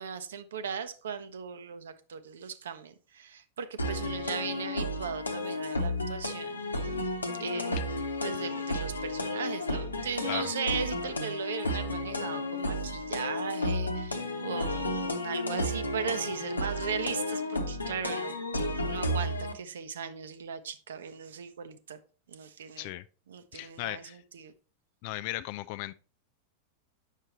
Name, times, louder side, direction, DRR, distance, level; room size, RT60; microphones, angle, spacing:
voice 1, 0.0-6.6 7.4-7.9 8.2-22.0 22.3-22.9 23.3-24.5, right 7 dB, 65° right, 0.7 m, -38 dB
sound 1, 3.8-19.5, left 1 dB, 80° left, 0.9 m, -32 dB
voice 2, 23.5-24.2 25.0-25.9, left 16 dB, 45° left, 0.3 m, -36 dB
8.3 x 6.5 x 3.0 m
figure-of-eight pair, 90°, 0 cm